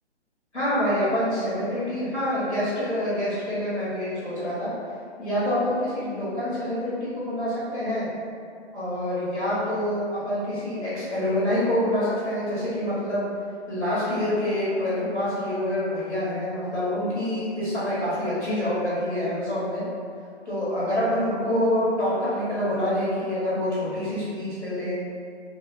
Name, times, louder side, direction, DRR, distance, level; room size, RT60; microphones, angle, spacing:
voice 1, 0.5-4.7 5.2-8.1 8.7-13.2 13.7-19.8 20.4-25.0, left 1 dB, 85° left, -10 dB, 1.2 m, -26 dB
2.7 x 2.0 x 2.5 m, 2.3 s
figure-of-eight pair, 135°, 34 cm